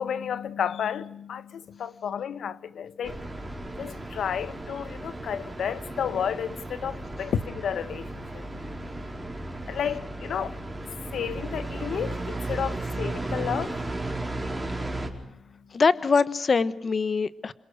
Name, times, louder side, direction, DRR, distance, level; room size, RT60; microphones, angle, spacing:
voice 1, 0.0-3.2 3.8-8.4 9.7-10.6 11.1-13.8, left 8 dB, 85° left, 1.2 m, -31 dB
sound 1, 3.0-15.1, right 2 dB, 10° right, 4.7 m, -35 dB
voice 2, 15.7-17.5, left 5 dB, 40° left, 1.0 m, -23 dB
27.5 x 26.0 x 6.6 m
wide cardioid pair, 135°, 0 cm